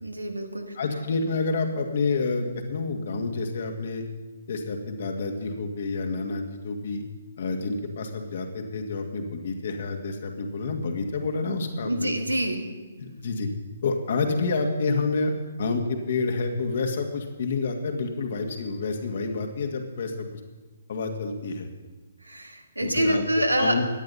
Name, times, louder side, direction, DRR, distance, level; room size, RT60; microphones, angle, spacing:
voice 1, 0.0-0.7 11.8-12.7 22.2-23.8, right 1 dB, 85° right, 5 dB, 2.0 m, -26 dB
voice 2, 0.8-4.0 4.5-7.0 7.4-12.2 13.0-13.5 13.8-15.3 15.6-20.4 20.9-21.7 22.8-23.2 23.6-23.8, left 3 dB, 50° left, 4 dB, 2.1 m, -28 dB
16.5 x 10.5 x 5.6 m, 1.2 s
figure-of-eight pair, 130°, 0 cm